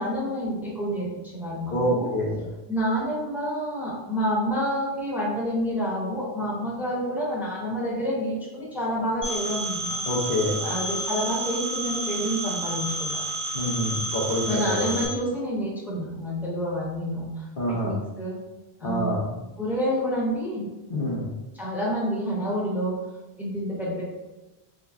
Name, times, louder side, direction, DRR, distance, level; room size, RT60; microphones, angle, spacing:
voice 1, 0.0-2.1 2.7-10.0 10.6-13.2 14.4-18.4 18.8-19.1 19.6-20.6 21.5-23.0 23.4-24.0, equal, ahead, -6 dB, 0.9 m, -28 dB
voice 2, 1.7-2.4 10.1-10.6 13.5-15.0 17.6-18.0 18.8-19.3 20.9-21.3, left 1 dB, 60° left, -4 dB, 0.9 m, -26 dB
Telephone, 9.2-15.1, right 2 dB, 40° left, 1.2 m, -30 dB
3.8 x 2.1 x 3.4 m, 1.1 s
omnidirectional pair, 1.0 m